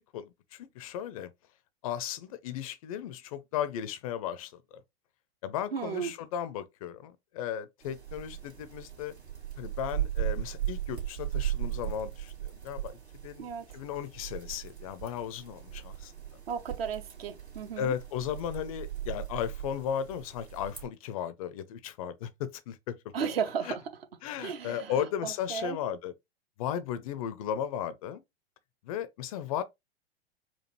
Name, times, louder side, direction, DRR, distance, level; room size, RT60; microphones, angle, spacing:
voice 1, 0.1-1.3 1.8-4.8 5.4-9.1 9.6-13.0 13.2-16.1 17.8-23.3 23.6-23.8 24.2-26.1 26.6-28.2 28.8-29.6, left 9 dB, 35° left, 0.4 m, -35 dB
voice 2, 5.7-6.1 13.4-13.7 16.5-17.9 23.1-23.8 24.4-24.9 25.2-25.8, right 7 dB, 60° right, 0.8 m, -34 dB
sound 1, 7.8-20.9, right 12 dB, 80° right, 2.2 m, -37 dB
4.4 x 2.3 x 2.9 m
figure-of-eight pair, 100°, 33 cm